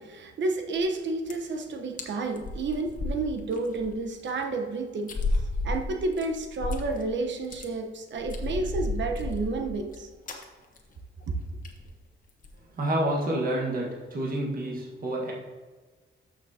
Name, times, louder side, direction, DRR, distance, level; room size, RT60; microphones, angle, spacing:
voice 1, 0.0-10.1 11.3-11.4, right 3 dB, 60° right, 4 dB, 1.0 m, -31 dB
sound 1, 0.8-1.0 1.3-1.6 2.0-2.1 2.4-3.9 4.3-4.4 5.1-7.1 7.4-7.7 8.2-10.0 10.3-10.4 10.8-11.0 11.2-11.3 11.6-11.9 12.3-12.6, left 2 dB, 40° left, 1.2 m, -32 dB
voice 2, 12.7-15.3, right 1 dB, 45° right, -2 dB, 1.5 m, -28 dB
13.5 x 6.2 x 2.8 m, 1.4 s
wide cardioid pair, 155°, 21 cm